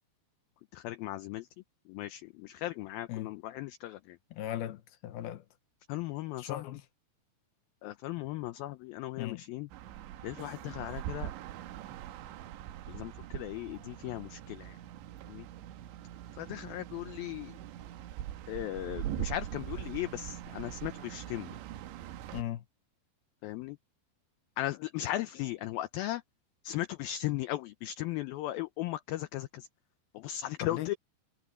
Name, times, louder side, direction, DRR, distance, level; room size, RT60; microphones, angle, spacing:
voice 1, 0.7-1.5 1.9-4.2 5.9-6.7 7.8-9.7 10.2-11.3 12.9-14.8 15.3-15.5 16.4-17.5 18.5-21.6 23.4-23.8 24.6-26.2 26.6-29.7 30.1-30.9, left 15 dB, 90° left, 2.1 m, -37 dB
voice 2, 4.3-5.5 6.4-6.9 9.2-9.4 22.3-22.6 30.6-31.0, left 13 dB, 75° left, 2.5 m, -38 dB
sound 1, 9.7-22.4, right 12 dB, 90° right, 3.4 m, -42 dB
omnidirectional pair, 5.0 m